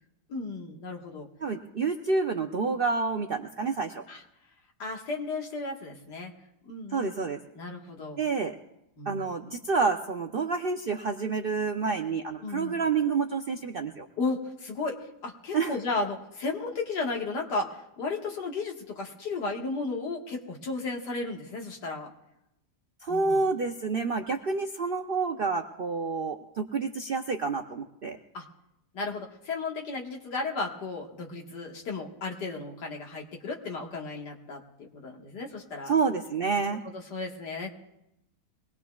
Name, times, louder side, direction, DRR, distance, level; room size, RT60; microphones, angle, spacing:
voice 1, 0.3-1.3 4.1-4.2 4.8-6.3 6.6-7.1 7.6-8.2 9.0-9.3 12.4-12.8 14.2-22.1 23.1-23.4 28.3-28.5 28.9-35.9 36.8-37.7, left 3 dB, 90° left, 0 dB, 2.2 m, -34 dB
voice 2, 1.4-4.0 6.9-7.4 8.2-8.6 9.1-14.1 15.5-15.7 23.0-28.2 35.9-36.8, right 4 dB, 75° right, 4 dB, 0.5 m, -28 dB
23.0 x 19.0 x 2.3 m, 0.85 s
omnidirectional pair, 1.7 m